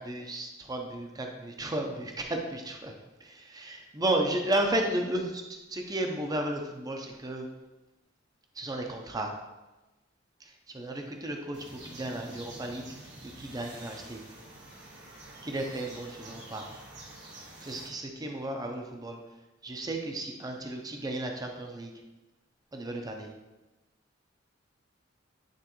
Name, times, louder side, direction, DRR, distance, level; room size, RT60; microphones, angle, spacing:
voice 1, 0.0-3.0 3.2-7.5 8.6-9.3 10.4-12.8 13.2-14.2 15.4-16.6 17.6-19.2 19.6-21.9 22.7-23.3, right 1 dB, 20° right, 3 dB, 0.6 m, -33 dB
sound 1, 11.5-17.9, right 2 dB, 60° right, 1.5 m, -48 dB
9.1 x 3.7 x 3.0 m, 1.1 s
head